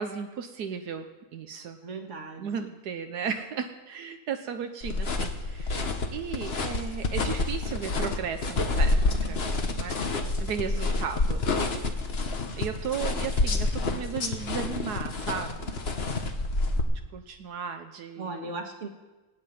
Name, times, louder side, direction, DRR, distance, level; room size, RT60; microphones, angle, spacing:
voice 1, 0.0-1.8 2.4-9.0 9.3-9.4 9.8-9.9 10.4-11.8 12.6-15.8 17.1-18.5, right 7 dB, 85° right, 7 dB, 1.5 m, -35 dB
voice 2, 1.8-2.7 18.2-18.9, right 3 dB, 50° right, 4 dB, 1.9 m, -37 dB
sound 1, 4.8-16.8, left 3 dB, 40° left, 1.4 m, -28 dB
17.5 x 7.9 x 9.2 m, 1.2 s
omnidirectional pair, 1.7 m